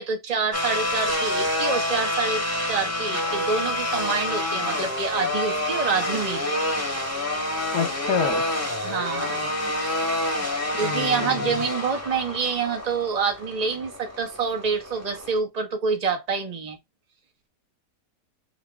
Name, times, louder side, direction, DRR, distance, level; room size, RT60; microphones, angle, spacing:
voice 1, 0.0-6.5 8.8-9.5 10.8-16.8, right 5 dB, 25° right, 1.1 m, -27 dB
sound 1, 0.5-15.4, left 1 dB, 10° left, 1.1 m, -27 dB
voice 2, 7.7-8.4 10.8-11.6, left 8 dB, 70° left, 1.5 m, -28 dB
6.0 x 2.8 x 2.3 m
omnidirectional pair, 1.8 m